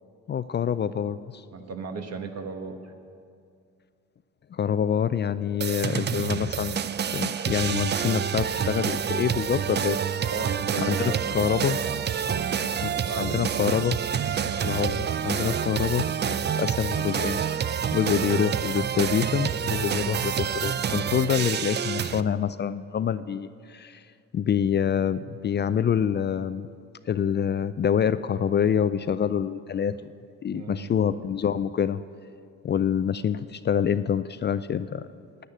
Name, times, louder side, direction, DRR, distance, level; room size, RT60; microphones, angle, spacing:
voice 1, 0.3-1.4 4.5-6.8 7.1-10.0 10.8-11.8 13.2-14.0 14.6-17.4 17.9-24.0 24.3-26.7 27.1-30.1 30.4-32.0 32.6-35.1, left 8 dB, 35° left, 14 dB, 0.4 m, -26 dB
voice 2, 1.5-2.9 10.3-11.9 12.2-12.6 13.0-13.9 14.2-14.3 30.5-31.0, right 5 dB, 55° right, 6 dB, 1.4 m, -36 dB
sound 1, 5.6-22.2, right 8 dB, 35° right, 0.4 m, -28 dB
10.0 x 9.0 x 9.9 m, 2.4 s
cardioid pair, 90°, 30 cm